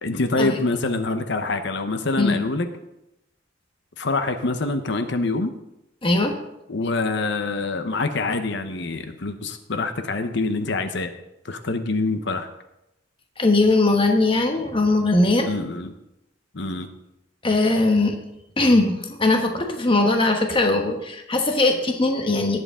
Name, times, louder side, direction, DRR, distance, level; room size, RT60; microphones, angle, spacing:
voice 1, 0.0-2.7 4.0-5.5 6.7-11.1 11.4-12.5 15.5-16.0 16.5-16.9, left 3 dB, 65° left, 8 dB, 0.9 m, -25 dB
voice 2, 6.0-6.4 13.4-15.5 17.4-18.2 18.6-22.6, left 2 dB, 25° left, 4 dB, 1.2 m, -20 dB
18.0 x 8.0 x 3.7 m, 0.89 s
head